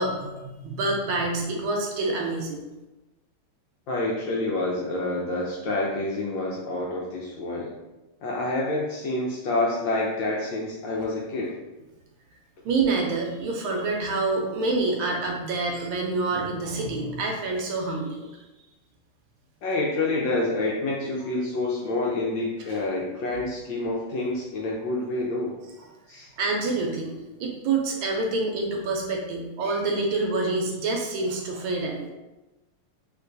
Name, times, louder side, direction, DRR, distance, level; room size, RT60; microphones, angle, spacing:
voice 1, 0.0-2.6 11.0-11.1 12.6-18.3 22.7-22.8 26.4-27.1 27.4-32.1, right 3 dB, 75° right, 1 dB, 1.3 m, -27 dB
voice 2, 3.9-7.7 8.2-11.5 19.6-25.5 26.1-26.3, left 2 dB, 75° left, -3 dB, 1.1 m, -28 dB
3.3 x 2.9 x 2.5 m, 1.1 s
omnidirectional pair, 2.4 m